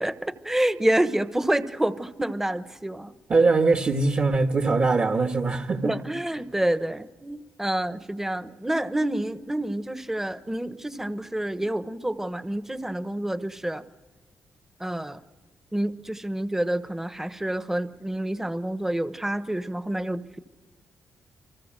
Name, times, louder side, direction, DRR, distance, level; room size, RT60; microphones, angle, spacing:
voice 1, 0.0-3.1 5.8-13.8 14.8-15.2 15.7-20.4, right 1 dB, 10° right, 11 dB, 1.1 m, -28 dB
voice 2, 3.3-6.0, right 3 dB, 40° right, 5 dB, 1.6 m, -22 dB
29.0 x 24.5 x 7.6 m, 1.3 s
cardioid pair, 95°, 5 cm